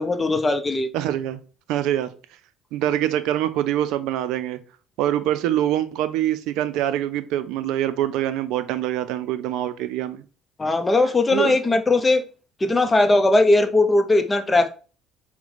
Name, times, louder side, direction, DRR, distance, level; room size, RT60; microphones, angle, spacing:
voice 1, 0.0-0.9 10.6-12.2 12.6-14.7, left 2 dB, 25° left, 0.7 m, -19 dB
voice 2, 0.9-1.4 1.7-2.1 2.7-4.6 5.0-10.2 11.3-11.6, right 12 dB, 70° right, 0.4 m, -24 dB
4.3 x 2.2 x 3.9 m
hypercardioid pair, 60°, 0 cm